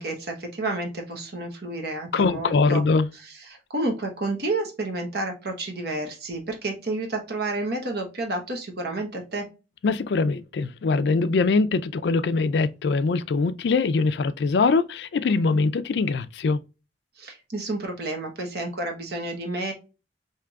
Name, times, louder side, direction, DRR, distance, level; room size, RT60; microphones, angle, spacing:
voice 1, 0.0-2.8 3.5-9.4 17.2-19.7, right 2 dB, 60° right, 1.0 m, -30 dB
voice 2, 2.1-3.1 9.8-16.6, left 4 dB, 60° left, 0.4 m, -22 dB
4.5 x 2.8 x 2.3 m
head